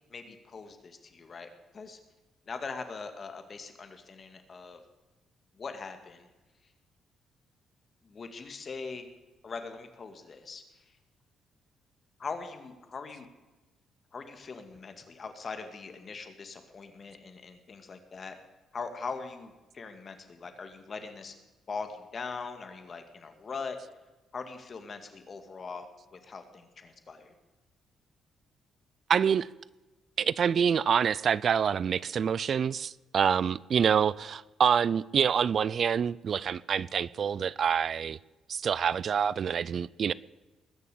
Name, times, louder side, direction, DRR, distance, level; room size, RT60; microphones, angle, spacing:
voice 1, 0.1-1.5 1.7-2.0 2.5-4.8 5.6-6.3 8.0-9.1 9.4-10.6 12.2-13.3 14.1-18.4 18.7-21.3 21.7-23.8 24.3-27.3, left 4 dB, 40° left, 2.2 m, -41 dB
voice 2, 29.1-29.5 30.2-38.2 38.5-40.1, right 7 dB, 55° right, 0.4 m, -26 dB
20.5 x 6.9 x 8.5 m
cardioid pair, 90°, 0 cm